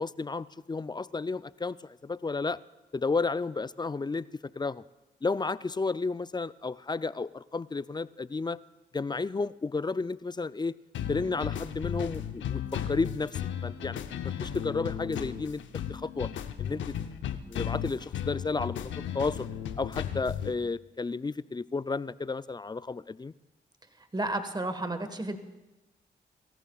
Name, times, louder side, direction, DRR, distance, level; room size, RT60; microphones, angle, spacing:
voice 1, 0.0-2.6 2.9-4.8 5.2-8.6 8.9-10.7 11.1-16.3 16.6-16.9 17.5-19.5 19.8-23.3, left 4 dB, 20° left, 17 dB, 0.4 m, -32 dB
sound 1, 10.9-20.5, left 9 dB, 80° left, 0.7 m, -35 dB
voice 2, 24.1-25.4, right 2 dB, 20° right, 9 dB, 1.5 m, -32 dB
23.5 x 14.0 x 2.4 m, 1.1 s
supercardioid pair, 40°, 19 cm